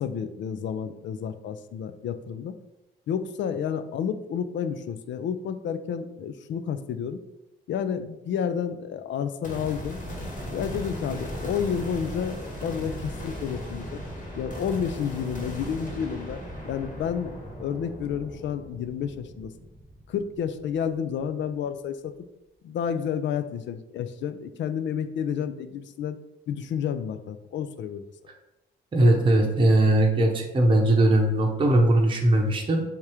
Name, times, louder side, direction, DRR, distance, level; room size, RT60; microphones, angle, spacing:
voice 1, 0.0-2.6 3.1-7.2 7.7-10.0 10.5-14.0 14.3-17.3 17.6-19.5 20.1-22.1 22.6-26.2 26.5-28.0, left 7 dB, 65° left, 11 dB, 0.4 m, -30 dB
sound 1, 9.4-20.8, equal, 40° left, 1.4 m, -37 dB
voice 2, 28.9-32.8, right 1 dB, 25° right, 0 dB, 0.7 m, -20 dB
3.5 x 2.9 x 4.8 m, 0.93 s
cardioid pair, 105°, 20 cm